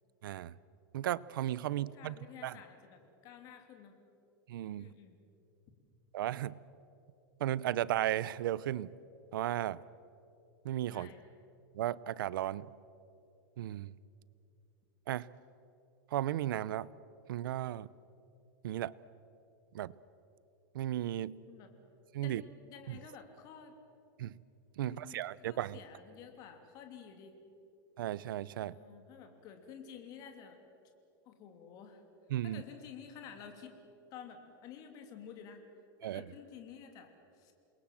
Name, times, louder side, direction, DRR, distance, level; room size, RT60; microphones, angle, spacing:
voice 1, 0.2-0.5 0.9-2.1 2.4-2.6 4.5-4.9 6.1-6.6 7.4-8.9 9.3-9.8 10.6-11.1 11.7-12.7 13.6-13.9 15.1-15.3 16.1-16.9 17.3-17.9 18.6-18.9 19.7-19.9 20.7-21.4 22.1-22.4 22.9-23.0 24.2-24.4 24.8-25.8 28.0-28.8 32.3-32.6 36.0-36.2, right 13 dB, 85° right, 20 dB, 0.7 m, -35 dB
voice 2, 1.7-4.0 4.8-5.2 10.9-11.2 21.5-21.7 22.2-23.7 24.8-27.4 28.6-30.6 31.2-32.0 32.4-33.8 34.1-35.6 36.0-37.5, left 7 dB, 35° left, 5 dB, 3.0 m, -51 dB
28.5 x 21.5 x 7.6 m, 2.7 s
supercardioid pair, 165°, 11 cm